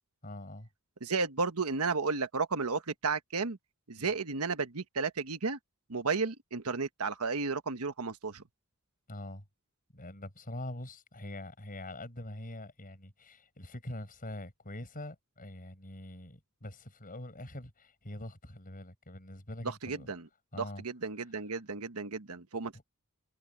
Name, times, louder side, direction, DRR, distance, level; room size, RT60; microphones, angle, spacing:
voice 1, 0.2-0.7 4.0-4.1 9.1-9.4 9.9-20.1 20.5-20.8 22.7-22.8, left 1 dB, 40° left, 6.0 m, -44 dB
voice 2, 1.0-3.6 3.9-5.6 5.9-8.4 19.6-20.3 20.6-22.8, right 4 dB, 80° right, 1.3 m, -33 dB
head